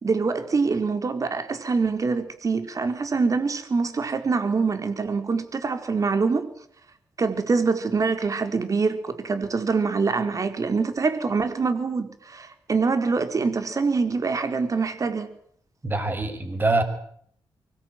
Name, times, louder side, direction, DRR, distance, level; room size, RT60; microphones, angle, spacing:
voice 1, 0.0-6.5 7.2-15.3, right 4 dB, 45° right, 4.4 m, -25 dB
voice 2, 15.8-16.8, right 2 dB, 25° right, 6.4 m, -24 dB
25.0 x 21.0 x 9.4 m
cardioid pair, 105°, 8 cm